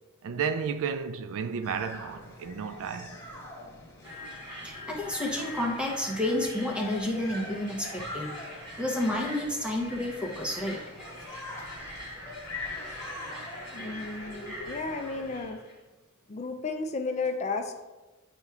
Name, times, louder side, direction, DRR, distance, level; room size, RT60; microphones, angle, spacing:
voice 1, 0.2-3.2, right 6 dB, 65° right, 0.4 m, -32 dB
sound 1, 1.6-15.5, left 2 dB, 15° left, 1.2 m, -44 dB
sound 2, 4.0-15.7, left 1 dB, 20° right, 1.8 m, -43 dB
voice 2, 4.6-8.4 8.8-10.8, left 1 dB, 5° right, 0.8 m, -30 dB
voice 3, 13.7-15.6 16.3-17.8, left 3 dB, 30° left, 0.4 m, -33 dB
9.6 x 4.4 x 2.4 m
head